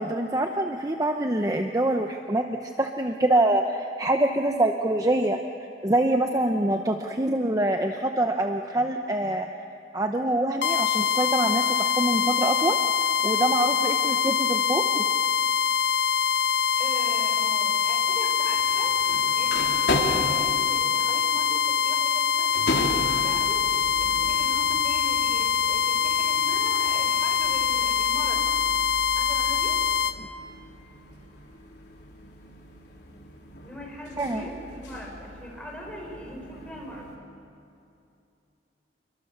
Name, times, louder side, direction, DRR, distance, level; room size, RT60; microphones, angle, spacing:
voice 1, 0.0-5.4 5.8-9.5 9.9-12.8 13.2-15.0 34.2-34.4, right 1 dB, 20° right, 4 dB, 0.9 m, -25 dB
sound 1, 10.6-30.2, left 7 dB, 90° left, 0.9 m, -24 dB
voice 2, 16.8-19.0 19.3-28.5 29.2-29.8 33.6-37.1, equal, 5° left, -2 dB, 5.3 m, -40 dB
sound 2, 18.5-37.2, left 1 dB, 75° left, 3.8 m, -37 dB
28.0 x 23.5 x 6.8 m, 2.7 s
head